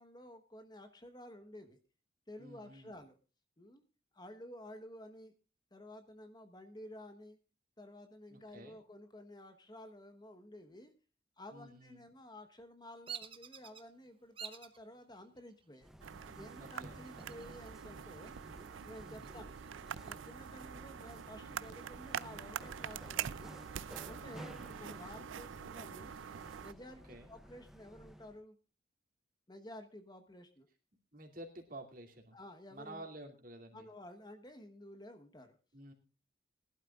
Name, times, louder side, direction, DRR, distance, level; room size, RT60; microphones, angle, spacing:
voice 1, 0.0-1.8 2.3-3.2 3.6-3.8 4.1-5.3 5.7-7.4 7.8-10.9 11.4-15.9 16.3-18.4 18.8-19.6 20.0-23.5 24.0-26.1 26.6-28.6 29.5-30.7 32.3-33.1 33.7-35.6, left 1 dB, 20° left, 7 dB, 1.1 m, -52 dB
voice 2, 2.4-2.9 8.3-8.8 11.5-12.0 16.6-16.9 19.1-19.4 24.1-24.7 27.1-27.3 31.1-32.4 32.7-33.9 35.7-35.9, right 1 dB, 45° right, 3 dB, 2.6 m, -51 dB
Bird vocalization bird call bird song, 13.1-13.8 14.4-14.8 15.4-15.9 17.0-17.8 18.2-18.3 18.7-20.1, right 7 dB, 30° right, 0.8 m, -48 dB
sound 1, 15.8-28.4, equal, ahead, 0.6 m, -55 dB
sound 2, 16.0-26.7, right 8 dB, 85° right, 0.5 m, -45 dB
21.0 x 11.5 x 2.4 m, 0.34 s
head